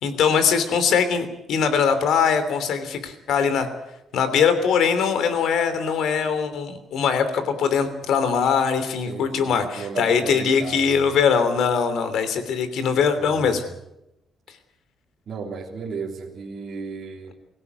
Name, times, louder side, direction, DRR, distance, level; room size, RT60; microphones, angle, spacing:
voice 1, 0.0-3.7 4.1-13.6, left 6 dB, 65° left, 11 dB, 3.1 m, -21 dB
voice 2, 9.1-11.0 13.2-13.6 15.3-17.3, right 5 dB, 40° right, -2 dB, 3.2 m, -35 dB
24.5 x 16.5 x 8.2 m, 0.87 s
cardioid pair, 180°, 0 cm